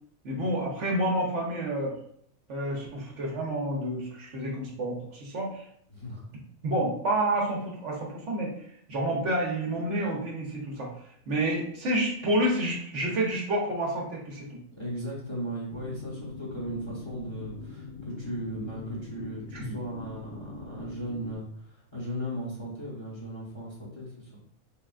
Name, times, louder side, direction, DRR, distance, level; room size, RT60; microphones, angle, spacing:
voice 1, 0.2-2.0 2.5-5.6 6.6-10.9 11.3-14.6 19.5-19.6, right 1 dB, 60° right, -2 dB, 1.1 m, -29 dB
voice 2, 5.9-6.2 14.8-24.4, right 1 dB, 25° left, -5 dB, 0.9 m, -37 dB
sound 1, 15.7-21.4, left 3 dB, 85° left, 1.1 m, -42 dB
3.5 x 3.5 x 2.4 m, 0.67 s
omnidirectional pair, 1.4 m